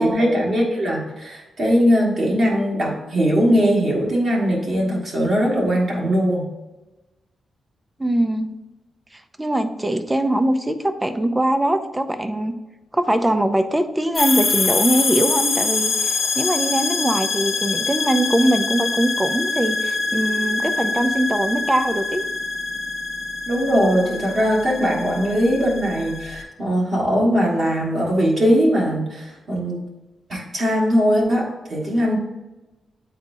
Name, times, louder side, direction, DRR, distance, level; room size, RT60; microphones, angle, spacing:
voice 1, 0.0-6.4 23.5-29.8 30.3-32.2, equal, 40° right, -3 dB, 1.4 m, -20 dB
voice 2, 8.0-8.5 9.4-10.8 11.0-12.5 12.9-22.2, right 1 dB, 10° right, 9 dB, 0.4 m, -21 dB
sound 1, 14.1-26.4, left 4 dB, 45° left, 0.7 m, -24 dB
8.9 x 4.1 x 2.6 m, 1.1 s
wide cardioid pair, 170°, 0 cm